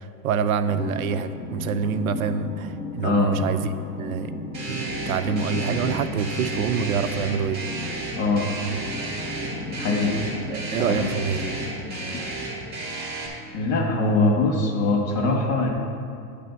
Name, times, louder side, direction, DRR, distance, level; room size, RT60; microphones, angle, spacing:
voice 1, 0.0-4.3 4.7-7.6 9.3-9.4 10.5-11.6, right 6 dB, 60° right, 10 dB, 0.5 m, -26 dB
sound 1, 0.7-11.7, left 3 dB, 10° left, 0.7 m, -35 dB
voice 2, 3.0-3.3 8.2-8.4 9.7-10.1 10.8-11.1 11.9-12.2 13.5-15.7, left 3 dB, 75° left, 1 dB, 1.9 m, -23 dB
sound 2, 4.5-13.3, right 2 dB, 20° right, 1.7 m, -33 dB
9.9 x 3.4 x 6.8 m, 2.4 s
supercardioid pair, 155°, 50 cm